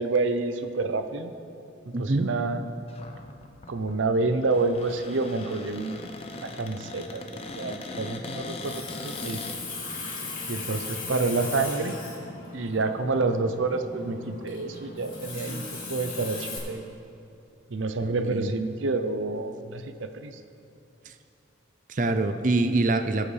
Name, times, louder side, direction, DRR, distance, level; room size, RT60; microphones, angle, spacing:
voice 1, 0.0-1.3 1.8-2.6 3.7-6.0 6.4-9.4 10.5-12.0 12.5-15.6 15.9-16.8 17.7-20.4, right 3 dB, 90° right, 9 dB, 0.7 m, -28 dB
voice 2, 1.9-2.3 18.0-18.5 21.1-21.2 21.9-23.3, right 2 dB, 40° right, 8 dB, 0.5 m, -25 dB
Cupboard open or close, 2.9-9.6, left 3 dB, 30° left, 0.7 m, -40 dB
Water tap faucet, 8.4-16.6, left 3 dB, 50° left, 2.2 m, -38 dB
19.5 x 7.7 x 3.4 m, 2.7 s
head